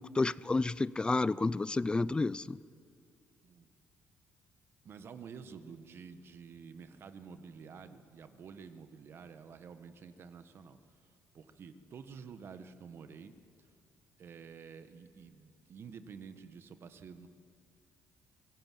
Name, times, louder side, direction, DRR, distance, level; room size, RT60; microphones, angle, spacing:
voice 1, 0.0-2.6, left 3 dB, 20° left, 0.4 m, -30 dB
voice 2, 4.8-10.8 11.3-13.3 14.2-17.3, right 6 dB, 55° right, 1.4 m, -50 dB
23.0 x 16.5 x 7.5 m
cardioid pair, 90°, 5 cm